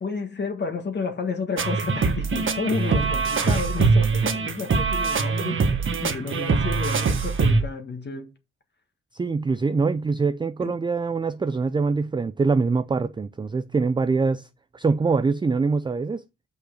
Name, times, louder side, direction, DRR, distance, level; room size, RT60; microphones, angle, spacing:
voice 1, 0.0-5.6 6.0-8.3 10.6-10.7, left 5 dB, 35° left, 1.5 m, -31 dB
sound 1, 1.6-7.6, right 4 dB, 40° right, 1.4 m, -23 dB
voice 2, 9.1-14.5 14.7-16.2, right 4 dB, 15° right, 0.4 m, -24 dB
6.3 x 5.5 x 6.4 m
cardioid pair, 90°, 30 cm